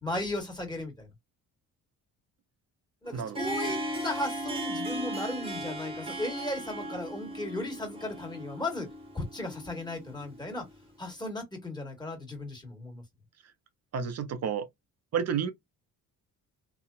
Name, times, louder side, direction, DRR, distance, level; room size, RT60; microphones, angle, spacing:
voice 1, 0.0-1.1 3.0-8.9 9.1-10.6 11.0-13.0, left 2 dB, 10° left, 1.5 m, -36 dB
Harp, 3.1-10.8, right 1 dB, 15° right, 0.9 m, -37 dB
voice 2, 3.1-3.4 13.9-14.7 15.1-15.5, right 7 dB, 50° right, 0.5 m, -30 dB
2.9 x 2.1 x 2.4 m
cardioid pair, 85°, 35 cm